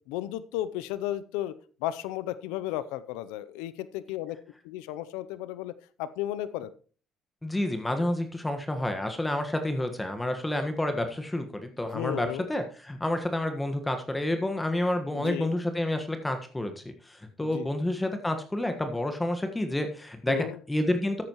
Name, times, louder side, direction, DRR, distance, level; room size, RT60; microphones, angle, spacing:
voice 1, 0.1-1.5 1.8-4.4 4.6-5.7 6.0-6.7 11.9-12.5 15.1-15.5 17.4-17.7 20.3-20.6, left 13 dB, 85° left, 16 dB, 0.6 m, -34 dB
voice 2, 7.4-21.2, left 1 dB, 15° left, 7 dB, 1.4 m, -29 dB
13.5 x 8.7 x 3.0 m, 0.40 s
supercardioid pair, 70°, 0 cm